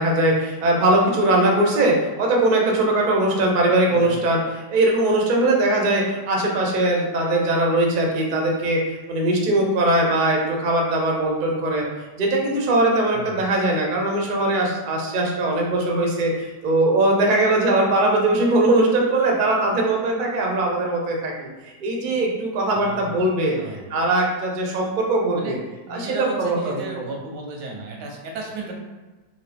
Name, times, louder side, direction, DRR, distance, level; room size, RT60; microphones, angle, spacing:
voice 1, 0.0-11.8 12.2-21.5 21.8-25.6 25.9-26.8, right 2 dB, 50° right, -1 dB, 0.5 m, -20 dB
voice 2, 3.6-4.3 13.1-13.5 22.7-23.9 25.3-25.5 25.9-28.7, right 2 dB, 90° right, 0 dB, 1.4 m, -35 dB
4.0 x 2.5 x 3.3 m, 1.2 s
omnidirectional pair, 1.8 m